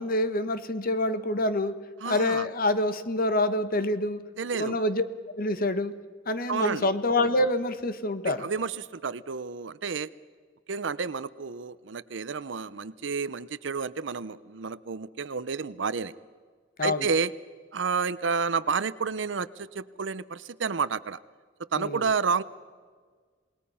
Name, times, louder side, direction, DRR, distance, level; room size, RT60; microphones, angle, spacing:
voice 1, 0.0-1.7 2.0-4.2 4.5-5.0 5.4-5.9 6.3-8.5 16.8-17.1 21.8-22.1, left 1 dB, 50° left, 11 dB, 1.3 m, -26 dB
voice 2, 2.0-2.5 4.4-4.8 6.5-6.9 8.2-10.1 10.7-16.1 16.8-17.3 17.7-21.2 21.7-22.4, right 5 dB, 75° right, 16 dB, 0.7 m, -30 dB
27.5 x 20.0 x 5.7 m, 1.5 s
head